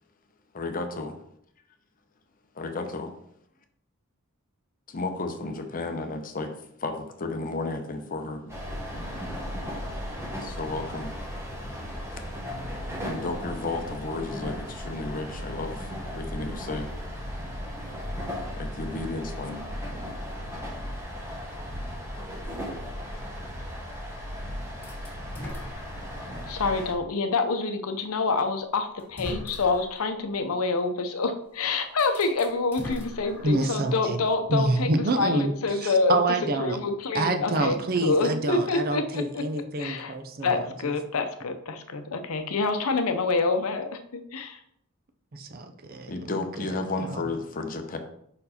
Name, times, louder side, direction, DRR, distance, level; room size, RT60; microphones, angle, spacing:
voice 1, 0.5-1.2 2.6-3.1 4.9-6.5 6.8-8.6 10.4-11.1 12.1-12.2 13.0-16.9 18.6-19.6 46.1-48.0, left 3 dB, 40° left, 5 dB, 0.7 m, -33 dB
inside a train, 8.5-26.9, equal, 10° right, 1.2 m, -36 dB
sound 1, 24.8-26.4 27.0-27.1 28.3-28.4 29.0-30.0 31.4-31.5 31.9-33.9, left 1 dB, 10° left, 2.0 m, -40 dB
voice 2, 26.5-39.4 39.8-40.2 40.4-44.6, left 3 dB, 75° left, 7 dB, 0.7 m, -27 dB
voice 3, 33.4-34.2 34.5-36.8 37.1-40.9 45.3-46.1 46.6-46.7 47.0-47.2, right 2 dB, 45° right, 6 dB, 0.6 m, -27 dB
5.3 x 4.5 x 4.3 m, 0.72 s
head